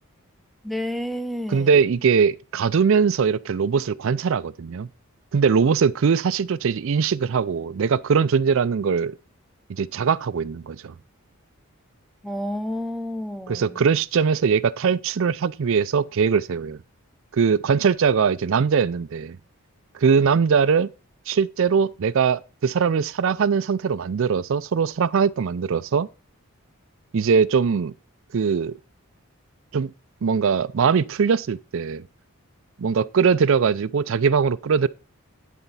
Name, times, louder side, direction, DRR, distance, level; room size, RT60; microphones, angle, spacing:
voice 1, 0.6-1.7 12.2-13.8, left 1 dB, ahead, 0.6 m, -30 dB
voice 2, 1.5-4.9 5.3-9.2 9.7-10.9 13.5-16.8 17.3-19.4 19.9-20.9 21.3-26.1 27.1-27.9 28.3-28.8 29.7-29.9 30.2-32.0 32.8-34.9, right 6 dB, 60° right, 0.4 m, -21 dB
10.5 x 4.4 x 5.5 m
head